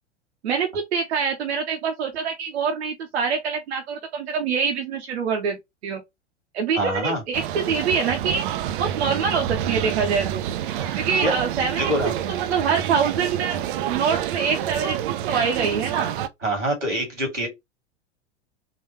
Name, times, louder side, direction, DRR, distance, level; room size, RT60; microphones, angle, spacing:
voice 1, 0.4-6.0 6.5-8.4 8.8-10.4 11.0-11.9 12.3-15.0 15.3-16.2, right 6 dB, 60° right, 0.9 m, -25 dB
voice 2, 6.8-7.2 10.8-11.3 11.8-12.1 16.4-17.5, right 1 dB, 85° right, 2.0 m, -25 dB
sound 1, 7.3-16.3, right 11 dB, 45° right, 0.5 m, -28 dB
3.9 x 2.6 x 3.0 m
figure-of-eight pair, 90°, 36 cm